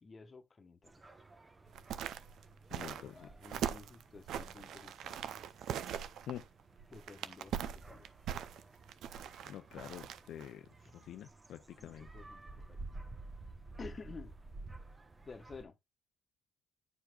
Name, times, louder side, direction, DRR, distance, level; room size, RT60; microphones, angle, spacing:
voice 1, 0.0-1.0 2.9-5.3 6.9-8.1 10.8-10.9 11.8-12.8 13.8-14.3 15.2-15.7, left 4 dB, 35° left, 1.2 m, -52 dB
sound 1, 0.8-15.7, right 2 dB, 25° right, 1.0 m, -53 dB
sound 2, 1.7-10.5 10.9-11.0, right 9 dB, 75° right, 0.5 m, -41 dB
voice 2, 2.7-3.3 6.3-6.5 9.4-12.1, left 11 dB, 75° left, 0.5 m, -47 dB
10.0 x 4.7 x 2.3 m
cardioid pair, 90°, 0 cm